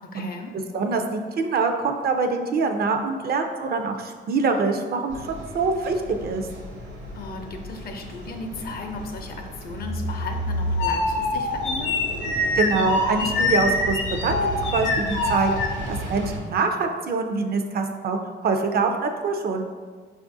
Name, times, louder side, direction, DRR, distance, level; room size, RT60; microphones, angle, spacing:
voice 1, 0.0-0.5 7.1-12.0, left 3 dB, 50° left, 4 dB, 0.5 m, -36 dB
voice 2, 0.5-6.0 6.2-6.5 12.6-14.0 14.2-15.5 15.9-19.6, right 4 dB, 50° right, 5 dB, 0.4 m, -24 dB
sound 1, 5.1-16.4, right 1 dB, 70° right, 1.0 m, -35 dB
sound 2, 9.8-16.2, left 2 dB, 90° left, 0.6 m, -25 dB
5.3 x 2.4 x 2.6 m, 1.5 s
cardioid pair, 90°, 20 cm